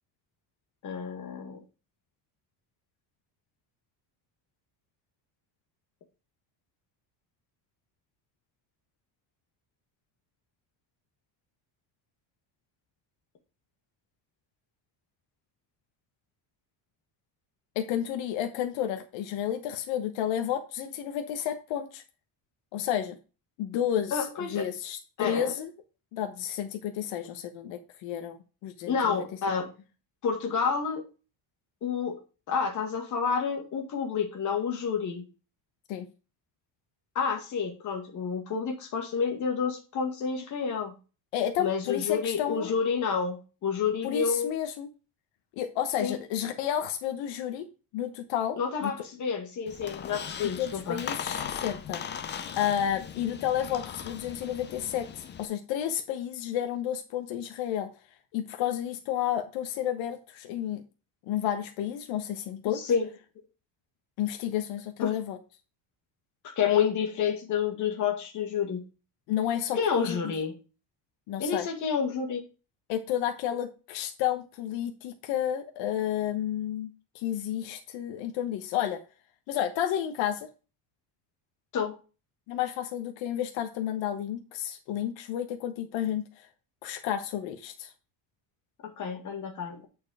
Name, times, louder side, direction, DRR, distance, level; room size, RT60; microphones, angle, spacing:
voice 1, 0.8-1.6 24.1-24.7 25.2-25.5 28.9-29.7 30.2-31.0 31.8-32.2 32.5-35.2 37.2-40.9 41.6-44.5 46.0-46.2 48.6-51.0 62.7-63.1 65.0-65.1 66.4-68.8 69.8-70.5 71.4-72.4 81.7-81.9 88.8-89.9, left 6 dB, 40° left, 3 dB, 2.0 m, -29 dB
voice 2, 17.7-22.0 22.7-23.2 23.6-25.7 26.1-29.2 35.9-36.1 41.3-42.7 44.0-44.9 45.5-47.7 47.9-48.9 50.6-52.0 52.6-55.1 55.4-57.9 58.3-60.8 61.3-62.8 64.2-65.4 69.3-70.2 71.3-71.7 72.9-79.0 79.5-80.5 82.5-86.5 86.8-87.9, left 10 dB, 80° left, 7 dB, 1.2 m, -31 dB
Squeak, 49.7-55.5, left 8 dB, 25° left, 0.5 m, -38 dB
8.8 x 4.8 x 4.8 m, 0.33 s
cardioid pair, 175°, 45 cm